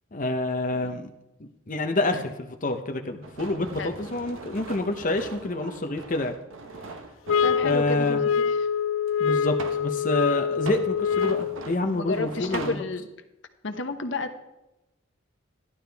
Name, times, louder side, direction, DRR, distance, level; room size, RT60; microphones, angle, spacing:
voice 1, 0.1-1.1 1.4-6.3 7.6-8.2 9.2-12.7, left 2 dB, 40° left, 5 dB, 0.8 m, -28 dB
sound 1, 3.2-8.3 9.1-9.9 10.5-12.8, right 3 dB, 90° right, 1.1 m, -40 dB
sound 2, 7.3-11.6, left 7 dB, 85° left, 0.3 m, -25 dB
voice 2, 7.4-8.7 11.9-13.1 13.6-14.4, left 2 dB, 65° left, 7 dB, 1.1 m, -32 dB
14.5 x 11.5 x 3.5 m, 0.94 s
head